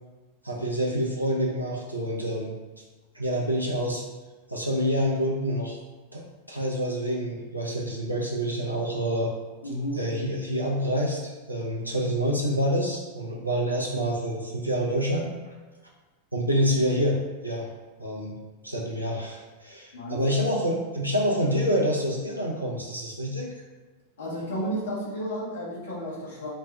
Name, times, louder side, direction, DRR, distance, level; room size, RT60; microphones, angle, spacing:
voice 1, 0.4-2.6 3.1-4.0 4.5-5.8 6.1-9.3 9.9-15.3 16.3-17.2 17.4-17.7 18.0-18.3 18.6-23.5, equal, 90° right, -2 dB, 0.7 m, -27 dB
voice 2, 9.6-10.1 19.9-20.3 24.2-26.5, equal, 65° left, -5 dB, 1.2 m, -32 dB
4.2 x 2.3 x 3.9 m, 1.2 s
figure-of-eight pair, 90°, 0 cm